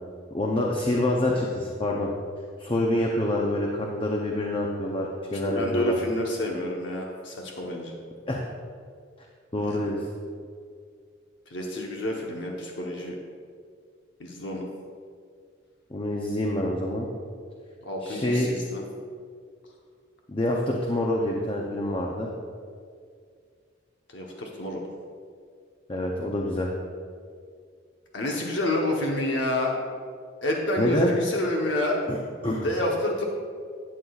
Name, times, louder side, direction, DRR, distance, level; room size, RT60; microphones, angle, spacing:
voice 1, 0.3-2.1 2.6-6.0 8.3-8.5 9.5-10.0 15.9-17.1 18.0-18.5 20.3-22.3 25.9-26.7 30.8-31.1 32.1-32.2 32.4-32.7, left 1 dB, 25° left, -1 dB, 0.6 m, -26 dB
voice 2, 5.3-7.9 9.6-9.9 11.5-13.2 14.2-14.7 17.8-18.8 24.1-24.9 28.1-29.8 30.4-32.0 32.6-33.2, left 1 dB, 65° left, -1 dB, 1.0 m, -29 dB
12.0 x 8.5 x 2.4 m, 2.1 s
head